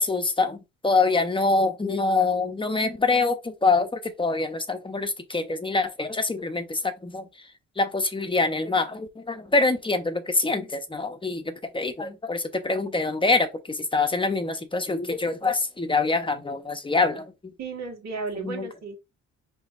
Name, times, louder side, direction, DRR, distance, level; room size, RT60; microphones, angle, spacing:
voice 1, 0.0-7.3 7.8-17.5 18.3-18.7, left 3 dB, 15° left, 0.9 m, -25 dB
voice 2, 17.6-19.0, right 4 dB, 60° right, 1.8 m, -34 dB
5.1 x 3.4 x 2.6 m
cardioid pair, 90°, 30 cm